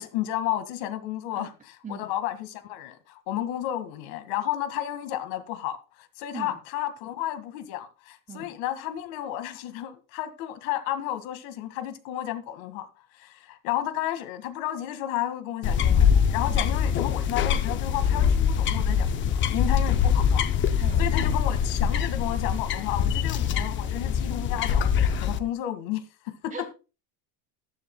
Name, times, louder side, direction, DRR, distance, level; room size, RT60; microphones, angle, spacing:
voice 1, 0.0-26.7, left 12 dB, 60° left, 2.0 m, -32 dB
sound 1, 15.6-25.4, left 7 dB, 25° left, 0.6 m, -23 dB
voice 2, 20.8-21.1 26.5-26.7, right 4 dB, 15° right, 2.2 m, -39 dB
14.5 x 13.5 x 2.2 m
cardioid pair, 175°, 47 cm